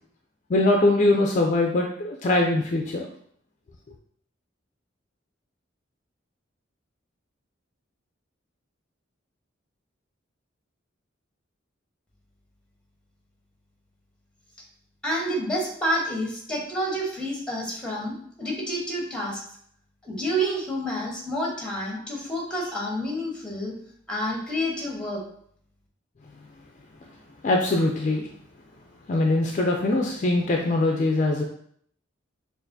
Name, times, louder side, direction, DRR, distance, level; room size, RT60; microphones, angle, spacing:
voice 1, 0.5-3.1 27.4-28.3 29.1-31.4, left 2 dB, 40° left, 1 dB, 0.4 m, -22 dB
voice 2, 15.0-19.4 20.0-23.7 24.1-25.2, equal, 5° left, -2 dB, 1.0 m, -29 dB
6.3 x 2.5 x 2.6 m, 0.64 s
head